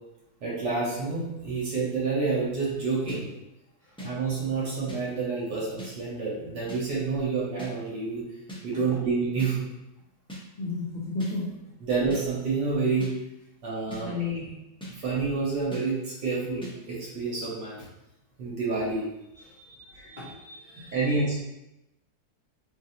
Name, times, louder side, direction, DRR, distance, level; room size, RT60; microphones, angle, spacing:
voice 1, 0.4-3.3 4.0-8.2 8.6-9.6 11.8-13.1 13.6-14.2 14.9-17.8 18.4-19.1 19.9-20.1 20.9-21.4, right 4 dB, 75° right, -6 dB, 2.0 m, -28 dB
sound 1, 3.1-3.2 4.0-4.1 4.9-5.0 5.8-5.9 6.7-6.8 7.6-7.7 8.5-8.6 9.4-9.5 10.3-10.4 11.2-11.3 12.1-12.2 13.0-13.1 13.9-14.0 14.8-14.9 15.7-15.8 16.6-16.7, equal, 5° left, 0.4 m, -39 dB
voice 2, 10.6-11.7 14.0-14.6 19.3-21.2, left 3 dB, 85° left, -5 dB, 0.4 m, -35 dB
4.1 x 3.4 x 2.7 m, 0.91 s
omnidirectional pair, 1.8 m